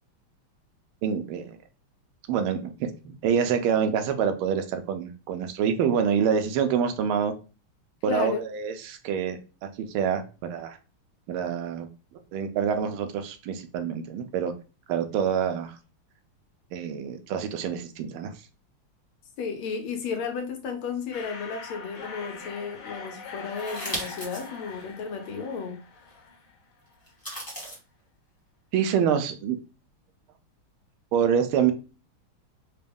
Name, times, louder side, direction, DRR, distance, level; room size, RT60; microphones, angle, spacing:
voice 1, 1.0-1.6 2.3-7.3 8.0-10.8 11.3-11.9 12.3-14.5 14.9-15.8 16.7-18.3 28.7-29.6 31.1-31.7, right 7 dB, 85° right, 8 dB, 1.4 m, -26 dB
voice 2, 8.1-8.4 19.4-26.1, left 5 dB, 85° left, 4 dB, 1.7 m, -33 dB
sound 1, 21.1-26.6, left 5 dB, 60° left, 1.3 m, -42 dB
sound 2, 23.6-24.5 25.0-25.1 27.1-27.8, right 1 dB, 20° left, 0.6 m, -35 dB
4.1 x 2.2 x 3.5 m, 0.33 s
omnidirectional pair, 2.3 m